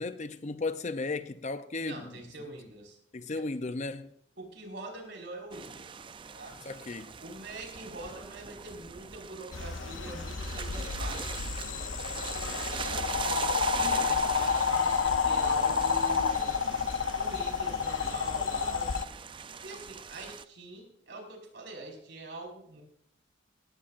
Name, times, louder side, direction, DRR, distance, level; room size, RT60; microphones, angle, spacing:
voice 1, 0.0-2.1 3.1-4.1 6.6-7.1, left 3 dB, 35° left, 0.6 m, -35 dB
voice 2, 1.8-3.0 4.4-6.0 6.3-6.6 7.2-12.5 13.1-16.6 17.2-19.1 19.6-22.8, right 2 dB, 65° right, 5.0 m, -44 dB
sound 1, 5.5-20.4, right 6 dB, 25° right, 0.4 m, -41 dB
sound 2, 9.5-19.0, left 6 dB, 80° left, 0.7 m, -30 dB
18.0 x 16.0 x 2.5 m
head